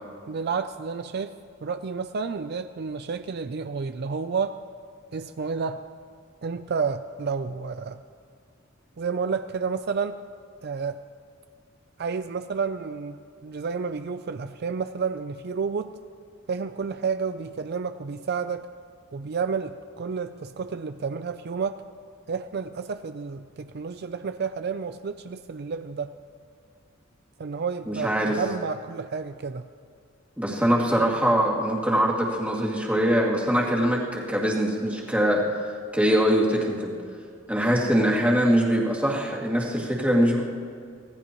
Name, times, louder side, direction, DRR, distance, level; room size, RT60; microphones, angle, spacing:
voice 1, 0.3-1.3 1.6-4.6 5.1-5.8 6.4-8.0 9.0-10.2 10.6-11.0 12.0-15.9 16.5-18.7 19.1-21.8 22.3-26.1 27.4-29.7, right 5 dB, 55° right, 10 dB, 0.4 m, -30 dB
voice 2, 27.9-28.4 30.4-35.4 35.9-36.9 37.5-40.4, equal, 5° right, -3 dB, 2.3 m, -23 dB
25.0 x 17.5 x 3.0 m, 2.2 s
head